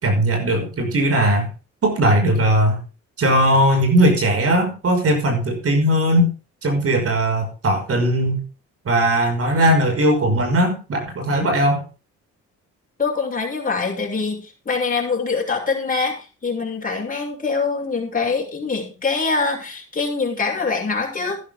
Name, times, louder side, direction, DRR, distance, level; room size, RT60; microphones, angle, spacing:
voice 1, 0.0-1.5 1.8-2.8 3.2-6.3 6.6-8.4 8.8-11.8, right 1 dB, 50° right, 4 dB, 5.7 m, -18 dB
voice 2, 13.0-21.4, left 4 dB, 25° left, 0 dB, 6.5 m, -24 dB
13.5 x 11.5 x 3.7 m, 0.34 s
cardioid pair, 90°, 30 cm